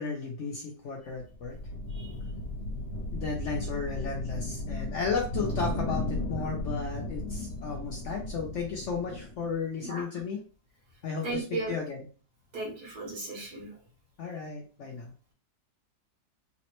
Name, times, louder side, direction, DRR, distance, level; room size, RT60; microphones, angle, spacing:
voice 1, 0.0-1.6 3.1-10.4 11.0-12.0 14.2-15.1, left 5 dB, 70° left, 0 dB, 0.7 m, -34 dB
sound 1, 1.3-9.6, left 1 dB, 50° left, 1.2 m, -35 dB
voice 2, 11.2-11.7 12.5-13.7, right 3 dB, 75° right, -1 dB, 1.6 m, -35 dB
3.5 x 2.0 x 2.9 m, 0.38 s
omnidirectional pair, 1.7 m